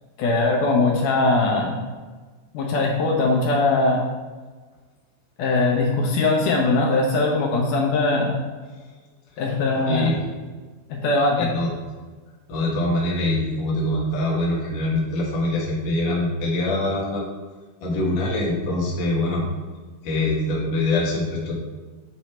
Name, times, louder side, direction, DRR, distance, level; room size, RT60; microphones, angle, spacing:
voice 1, 0.2-1.8 2.5-4.0 5.4-8.3 9.4-10.1 10.9-11.5, left 2 dB, 75° left, -1 dB, 2.2 m, -21 dB
voice 2, 9.9-10.2 11.4-11.7 12.5-17.2 17.8-19.4 20.0-21.6, left 2 dB, 50° left, -4 dB, 1.5 m, -24 dB
8.0 x 3.1 x 4.3 m, 1.3 s
omnidirectional pair, 3.9 m